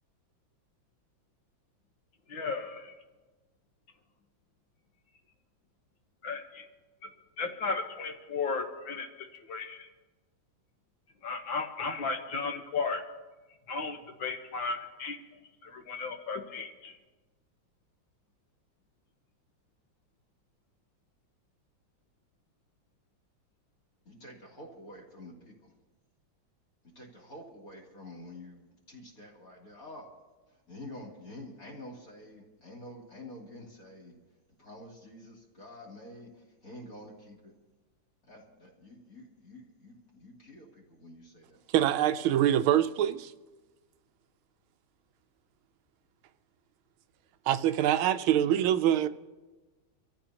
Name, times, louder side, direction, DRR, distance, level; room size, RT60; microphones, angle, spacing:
voice 1, 2.3-2.9 6.2-6.7 7.4-9.1 9.5-9.9 11.2-13.0 13.7-15.2 15.6-16.9, left 4 dB, 70° left, 1.9 m, -34 dB
voice 2, 24.0-25.5 26.9-30.0 30.7-34.1 34.6-36.3 36.6-37.5 38.3-41.6, left 1 dB, 45° left, 3.3 m, -48 dB
voice 3, 41.7-43.3 47.5-49.1, right 11 dB, 85° right, 1.4 m, -25 dB
26.0 x 14.0 x 2.9 m
omnidirectional pair, 2.2 m